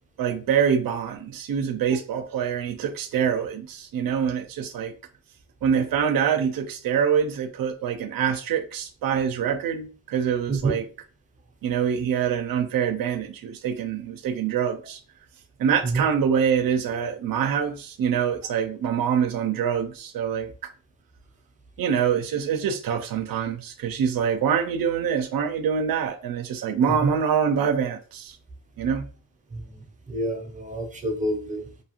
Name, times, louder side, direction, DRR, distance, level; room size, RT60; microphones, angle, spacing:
voice 1, 0.2-4.9 5.6-10.9 11.6-15.0 15.6-20.5 21.8-28.4 28.8-29.1, right 7 dB, 90° right, 0.5 m, -25 dB
voice 2, 30.1-31.6, right 2 dB, 25° right, 0.6 m, -27 dB
2.7 x 2.3 x 2.9 m
wide cardioid pair, 115°, 33 cm